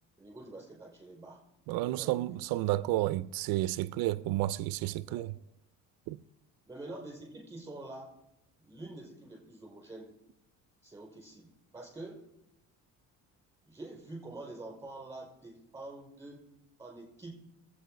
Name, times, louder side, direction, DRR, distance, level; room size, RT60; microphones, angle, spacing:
voice 1, 0.2-1.4 1.8-2.4 5.1-5.3 6.7-8.2 8.6-10.1 10.8-12.3 13.6-16.4 16.8-17.4, right 2 dB, 10° right, 5.4 m, -46 dB
voice 2, 1.7-5.3 6.1-6.2, right 16 dB, 85° right, 0.5 m, -31 dB
22.0 x 8.5 x 5.1 m
cardioid pair, 145°, 34 cm